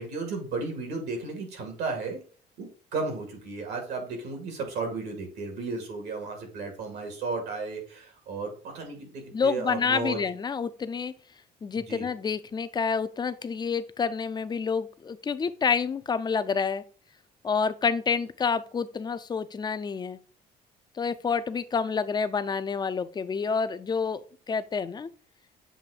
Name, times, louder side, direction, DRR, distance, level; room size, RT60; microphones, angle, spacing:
voice 1, 0.0-2.2 2.6-10.2 11.8-12.1, right 3 dB, 75° right, 3 dB, 2.3 m, -34 dB
voice 2, 9.3-11.1 11.6-16.8 17.4-20.2 21.0-25.1, left 5 dB, 25° left, 12 dB, 0.5 m, -28 dB
7.6 x 2.7 x 4.8 m, 0.40 s
cardioid pair, 110°, 17 cm